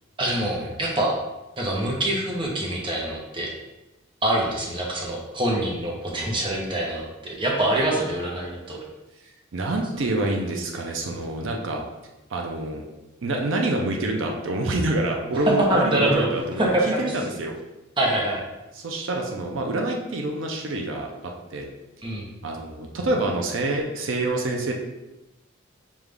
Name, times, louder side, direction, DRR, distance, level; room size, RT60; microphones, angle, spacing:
voice 1, 0.2-1.2 1.6-3.5 4.2-8.8 15.7-16.3 16.6-17.0 18.0-18.4 22.0-22.2, right 1 dB, 25° right, -2 dB, 0.7 m, -25 dB
voice 2, 9.5-11.8 12.3-12.8 13.2-17.5 18.8-21.7 22.4-24.7, right 2 dB, 70° right, 1 dB, 0.5 m, -27 dB
5.3 x 2.4 x 3.3 m, 1.0 s
head